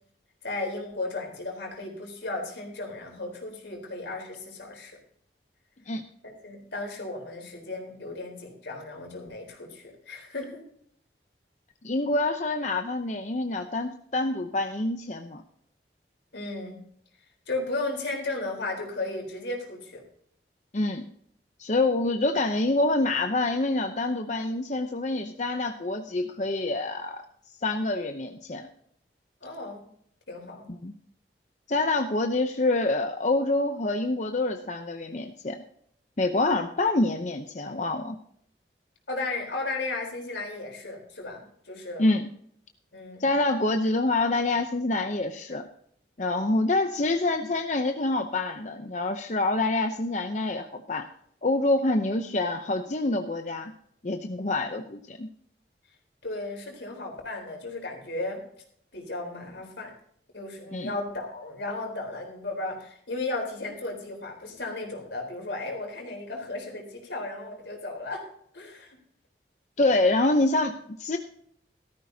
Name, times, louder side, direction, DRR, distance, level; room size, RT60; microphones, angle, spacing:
voice 1, 0.4-5.0 6.2-10.7 16.3-16.8 17.5-20.0 29.4-29.8 30.3-30.7 39.1-42.1 42.9-43.3 46.3-46.6 56.2-58.4 58.9-59.9 60.3-69.0, left 2 dB, 85° left, 1 dB, 4.0 m, -35 dB
voice 2, 11.8-15.4 20.7-21.0 21.6-27.2 27.6-28.7 30.7-30.9 31.7-35.6 36.2-38.2 42.0-42.3 43.2-45.7 46.2-51.1 51.4-53.7 54.0-55.3 60.7-60.9 69.8-71.2, left 2 dB, 40° left, 6 dB, 0.7 m, -26 dB
16.0 x 13.5 x 2.8 m, 0.66 s
head